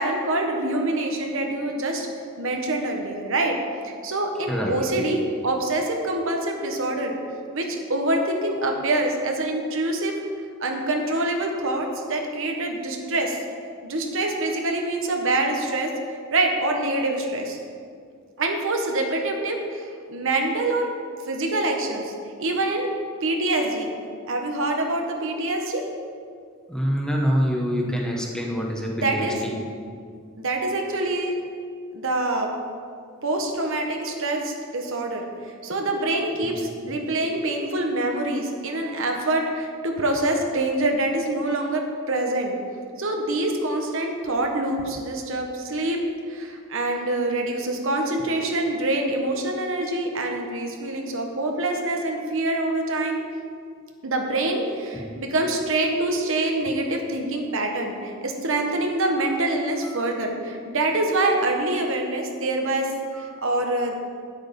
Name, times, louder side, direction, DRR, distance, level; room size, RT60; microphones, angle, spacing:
voice 1, 0.0-2.1 2.4-3.6 3.8-7.2 7.5-10.1 10.6-13.4 13.8-17.6 18.4-20.9 21.3-22.1 22.4-22.9 23.2-23.9 24.3-25.8 28.9-29.4 30.4-31.3 31.9-32.5 33.2-35.2 35.6-42.6 43.0-46.0 46.3-53.2 54.0-64.0, right 2 dB, 65° right, 2 dB, 1.3 m, -25 dB
voice 2, 4.5-4.8 26.7-29.5 36.4-36.5 54.9-55.1, equal, 5° left, -1 dB, 1.1 m, -25 dB
9.4 x 8.0 x 5.4 m, 2.2 s
head